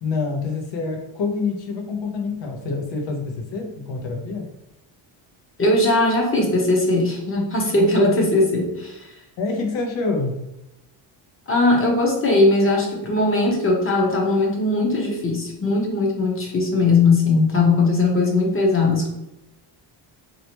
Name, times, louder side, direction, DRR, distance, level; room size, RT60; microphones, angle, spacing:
voice 1, 0.0-4.5 9.4-10.4, left 4 dB, 70° left, 2 dB, 0.9 m, -26 dB
voice 2, 5.6-9.1 11.5-19.1, left 2 dB, 30° left, 0 dB, 0.9 m, -19 dB
3.2 x 2.9 x 3.0 m, 0.90 s
cardioid pair, 125°, 46 cm